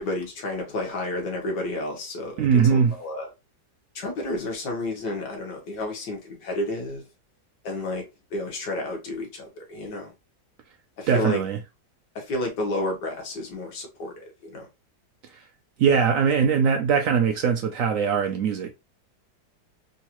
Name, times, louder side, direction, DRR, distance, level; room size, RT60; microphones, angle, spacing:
voice 1, 0.0-3.3 4.0-7.0 7.6-10.1 11.0-11.4 12.2-14.7, left 1 dB, 80° left, 1.9 m, -31 dB
voice 2, 2.4-2.9 11.1-11.6 15.8-18.7, right 6 dB, 70° right, 0.8 m, -21 dB
3.9 x 2.5 x 2.9 m
omnidirectional pair, 1.8 m